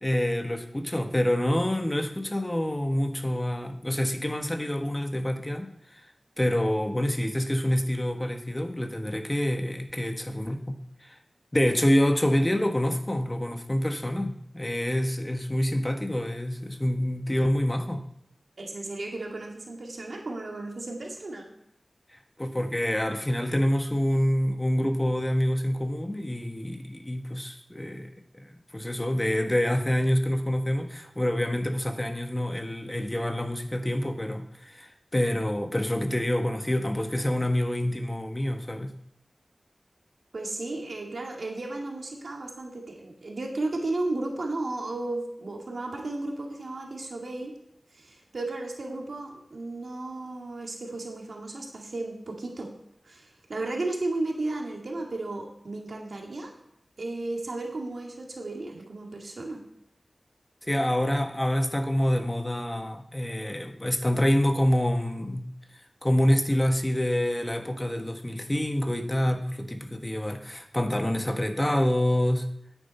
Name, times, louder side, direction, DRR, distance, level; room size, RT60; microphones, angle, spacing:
voice 1, 0.0-5.7 6.4-11.1 11.5-18.0 22.4-38.9 60.6-65.5 66.0-72.5, left 1 dB, 20° left, 5 dB, 1.3 m, -27 dB
voice 2, 18.6-21.5 40.3-47.5 47.9-52.7 53.0-56.5 57.0-59.6, right 2 dB, 85° right, 0 dB, 2.1 m, -34 dB
10.0 x 8.8 x 4.4 m, 0.76 s
wide cardioid pair, 45°, 0 cm